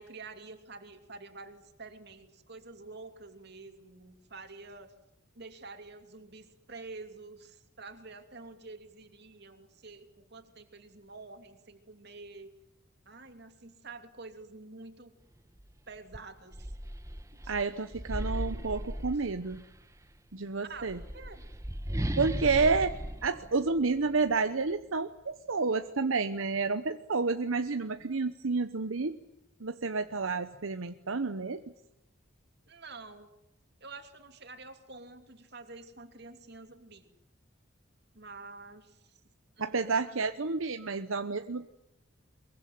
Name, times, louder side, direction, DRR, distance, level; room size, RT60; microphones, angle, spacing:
voice 1, 0.0-4.9 5.3-12.5 13.1-15.1 15.9-16.7 17.3-17.5 19.1-19.2 20.6-21.4 32.7-33.3 33.8-37.1 38.1-39.1 39.6-40.1, right 3 dB, 55° right, 6 dB, 3.0 m, -48 dB
sound 1, 15.6-15.7 16.1-19.7 20.7-24.3, right 1 dB, 15° right, 1.1 m, -37 dB
voice 2, 17.5-19.6 20.3-21.0 22.2-23.0 23.2-29.2 29.6-31.6 39.6-41.7, right 4 dB, 80° right, 9 dB, 1.0 m, -30 dB
23.0 x 22.5 x 9.5 m, 0.83 s
head